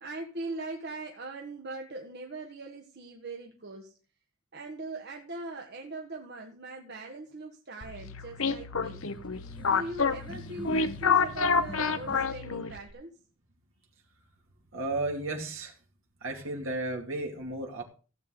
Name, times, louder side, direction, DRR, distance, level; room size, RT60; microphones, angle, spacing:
voice 1, 0.0-3.9 4.5-9.0 9.5-13.1, right 2 dB, 50° right, 2 dB, 1.4 m, -41 dB
sound 1, 7.8-12.9, left 5 dB, 75° left, 1.0 m, -29 dB
sound 2, 9.0-12.2, left 1 dB, 20° left, 1.5 m, -45 dB
voice 2, 14.7-15.7 16.2-17.8, right 2 dB, 70° right, 0 dB, 2.5 m, -33 dB
16.0 x 8.2 x 3.8 m, 0.37 s
head